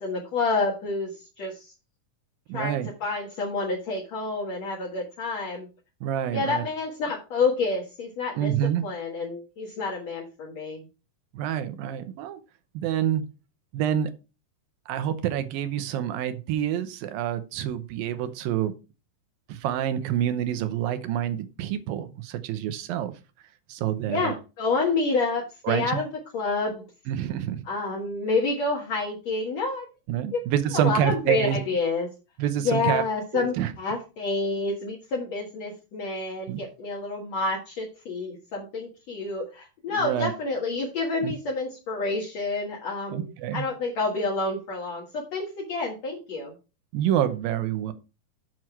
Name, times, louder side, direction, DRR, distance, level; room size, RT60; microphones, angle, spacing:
voice 1, 0.0-1.1 1.4-1.7 2.5-5.7 6.3-8.5 8.8-10.9 24.1-26.9 27.7-29.9 30.3-30.4 30.7-32.1 32.6-46.5, left 3 dB, 55° left, -2 dB, 2.5 m, -28 dB
voice 2, 2.5-2.9 6.0-6.6 8.4-8.9 11.3-12.4 12.7-13.2 13.7-14.1 14.9-18.7 19.5-23.2 23.7-24.3 25.7-25.9 27.1-27.6 30.1-31.6 32.4-33.0 33.3-33.7 36.5-36.6 40.0-40.3 41.2-41.3 43.1-43.7 46.9-47.9, right 10 dB, 85° right, 11 dB, 2.7 m, -27 dB
8.0 x 6.2 x 4.6 m, 0.30 s
omnidirectional pair, 4.0 m